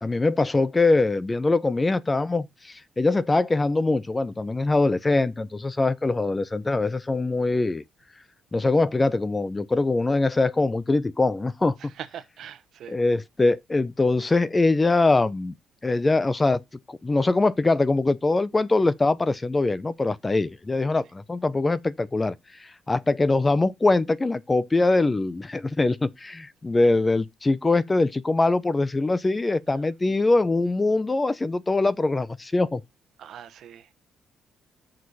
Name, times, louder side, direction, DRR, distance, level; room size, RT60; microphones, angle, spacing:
voice 1, 0.0-7.8 8.5-11.8 12.9-15.5 15.8-16.6 16.9-22.3 22.6-32.8, left 2 dB, 20° left, 0.7 m, -23 dB
voice 2, 11.8-13.0 29.7-29.8 33.2-33.9, right 9 dB, 70° right, 1.1 m, -42 dB
6.5 x 6.5 x 4.1 m
cardioid pair, 90°, 0 cm